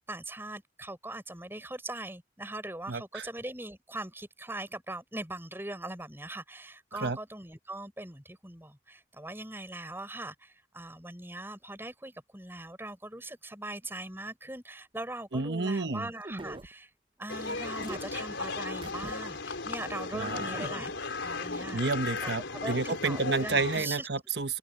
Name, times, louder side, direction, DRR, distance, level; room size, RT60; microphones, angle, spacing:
voice 1, 0.1-16.9 17.2-20.9 21.2-21.8 22.2-22.3 22.6-24.2, right 1 dB, 10° right, 6.7 m, -41 dB
voice 2, 2.9-3.3 6.9-7.2 15.3-16.1 20.1-20.7 21.7-24.6, right 3 dB, 65° right, 1.1 m, -30 dB
sound 1, 16.2-16.7 17.8-18.0 18.8-19.1 19.5-19.6 20.4-21.0, right 1 dB, 30° right, 0.8 m, -41 dB
sound 2, 17.3-23.8, left 3 dB, 85° left, 3.9 m, -36 dB
head